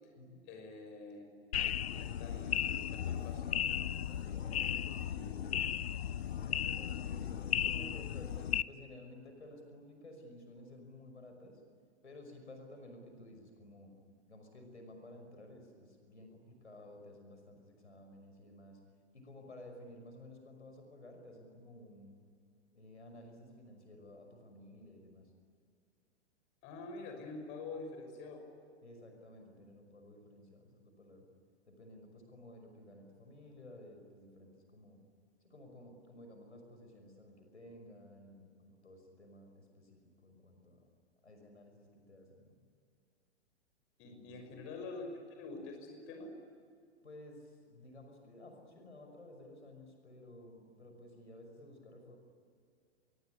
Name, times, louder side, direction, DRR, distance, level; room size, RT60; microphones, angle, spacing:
voice 1, 0.5-1.3 1.9-3.5 5.1-5.5 7.1-7.2 7.5-7.8 26.6-28.4 44.0-46.3, left 3 dB, 35° left, 5 dB, 6.0 m, -47 dB
sound 1, 1.5-8.6, left 10 dB, 65° left, 0.9 m, -35 dB
voice 2, 4.3-4.9 6.6-11.6 12.0-13.9 14.3-18.8 19.1-22.2 22.7-25.3 28.8-31.3 31.7-35.0 35.4-40.8 41.2-42.5 44.1-44.3 47.0-52.2, left 1 dB, 80° left, 5 dB, 5.8 m, -54 dB
26.0 x 23.0 x 10.0 m, 2.2 s
figure-of-eight pair, 105°, 34 cm